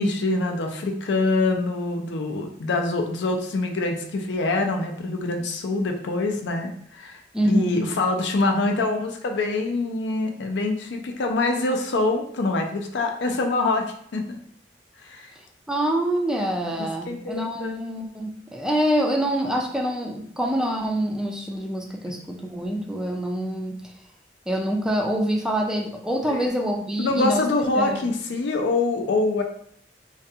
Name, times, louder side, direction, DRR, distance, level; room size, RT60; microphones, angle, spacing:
voice 1, 0.0-14.4 15.0-15.3 16.8-17.7 26.3-26.5 27.0-29.4, left 2 dB, 70° left, 4 dB, 0.4 m, -25 dB
voice 2, 7.3-7.8 15.7-23.8 24.5-27.4 27.8-28.1, equal, 5° right, 1 dB, 0.3 m, -25 dB
2.3 x 2.3 x 2.7 m, 0.65 s
head